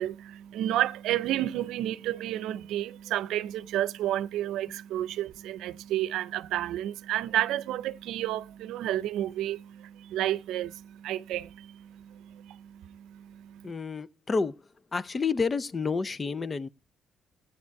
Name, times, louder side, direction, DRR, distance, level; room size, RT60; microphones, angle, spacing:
voice 1, 0.0-13.7, right 13 dB, 90° right, 0.6 m, -31 dB
voice 2, 13.6-14.5 14.9-16.7, left 4 dB, 30° left, 0.7 m, -29 dB
14.5 x 9.8 x 4.6 m
cardioid pair, 90°, 0 cm